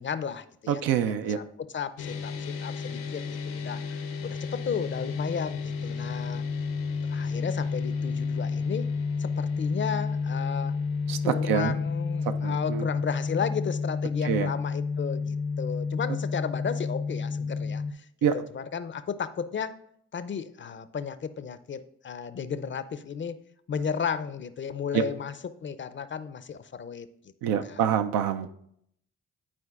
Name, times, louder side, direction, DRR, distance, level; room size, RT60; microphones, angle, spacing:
voice 1, 0.0-0.8 1.4-6.4 7.1-8.9 9.2-10.8 11.2-18.1 18.3-19.8 20.1-23.4 23.7-25.3 25.6-27.1 27.6-27.8, left 6 dB, 35° left, 13 dB, 0.5 m, -34 dB
voice 2, 0.7-1.4 11.1-11.7 12.2-12.9 14.2-14.5 18.2-18.4 24.9-25.0 27.4-28.5, right 8 dB, 80° right, 8 dB, 0.5 m, -26 dB
sound 1, 2.0-17.9, left 5 dB, 70° left, 0.8 m, -31 dB
11.0 x 4.4 x 2.4 m, 0.70 s
hypercardioid pair, 45°, 34 cm